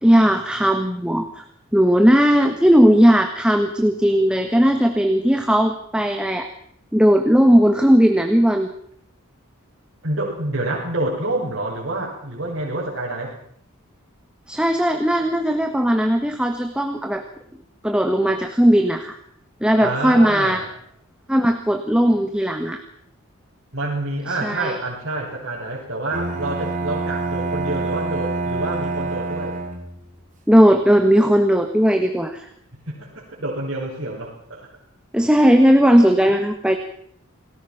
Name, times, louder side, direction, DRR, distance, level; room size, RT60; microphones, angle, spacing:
voice 1, 0.0-1.4 1.7-6.5 6.9-8.7 14.5-17.2 17.8-19.2 19.6-20.6 21.3-22.8 24.3-24.8 30.5-32.5 35.1-36.8, equal, 5° right, 5 dB, 1.5 m, -17 dB
voice 2, 10.0-13.3 19.8-20.7 23.7-29.6 32.9-34.7 36.3-36.4, right 2 dB, 55° right, -6 dB, 6.5 m, -27 dB
Bowed string instrument, 26.1-30.1, right 3 dB, 35° right, 4.0 m, -26 dB
28.5 x 19.0 x 6.0 m, 0.66 s
head